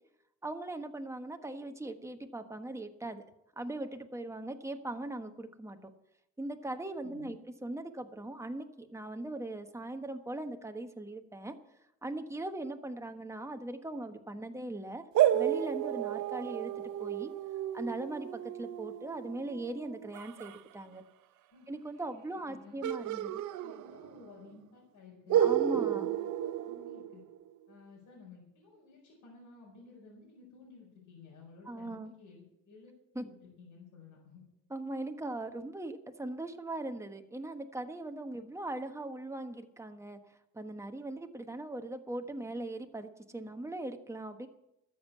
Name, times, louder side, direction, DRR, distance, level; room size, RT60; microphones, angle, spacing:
voice 1, 0.4-3.2 3.6-5.9 6.4-11.6 12.0-15.1 15.3-17.3 17.7-21.0 21.7-23.4 25.4-26.1 31.7-32.1 33.1-33.3 34.7-40.2 40.5-44.5, right 2 dB, 10° right, 6 dB, 1.3 m, -40 dB
voice 2, 7.0-7.4 21.5-21.7 22.5-23.2 23.4-27.2 27.7-34.4, left 4 dB, 80° left, -5 dB, 4.9 m, -54 dB
sound 1, 15.1-20.6 22.8-24.3 24.5-24.6 25.3-27.5, right 12 dB, 75° right, 0.7 m, -32 dB
13.0 x 7.4 x 8.4 m, 0.84 s
cardioid pair, 90°, 30 cm